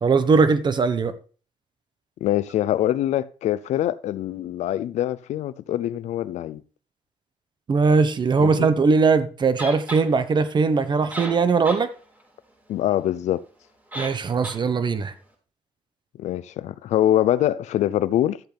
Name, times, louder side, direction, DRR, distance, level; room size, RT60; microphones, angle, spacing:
voice 1, 0.0-1.1 7.7-11.9 13.9-15.1, right 4 dB, 40° right, 1.2 m, -20 dB
voice 2, 2.2-6.6 8.4-8.7 12.7-13.4 16.2-18.4, left 12 dB, 80° left, 0.6 m, -24 dB
sound 1, 9.6-10.0 10.8-10.9 11.1-11.8 12.2-12.3 13.9-14.2 14.4-14.6, right 1 dB, 15° right, 5.2 m, -33 dB
13.5 x 8.0 x 3.5 m
cardioid pair, 95°, 12 cm